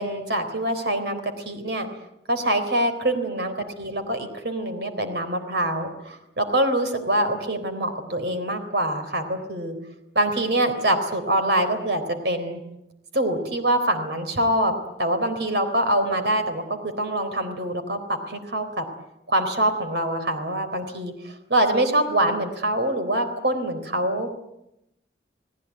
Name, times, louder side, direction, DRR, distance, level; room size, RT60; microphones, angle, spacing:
voice 1, 0.0-1.9 2.3-9.7 10.2-12.6 13.1-14.7 15.0-18.8 19.3-24.3, right 1 dB, 65° right, 7 dB, 3.9 m, -24 dB
29.5 x 19.0 x 9.4 m, 0.86 s
head